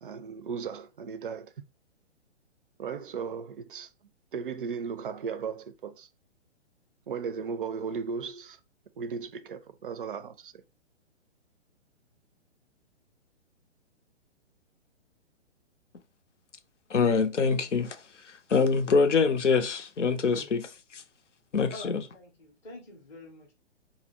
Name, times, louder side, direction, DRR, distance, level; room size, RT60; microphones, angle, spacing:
voice 1, 0.0-1.5 2.8-3.9 4.3-6.1 7.1-8.6 9.0-10.6, right 6 dB, 50° right, 0.4 m, -36 dB
voice 2, 16.9-18.0 18.5-20.7 20.9-21.0 21.5-22.0, left 5 dB, 85° left, 0.6 m, -24 dB
voice 3, 21.7-23.5, left 2 dB, 10° left, 0.5 m, -46 dB
2.6 x 2.0 x 3.9 m
figure-of-eight pair, 125°, 35 cm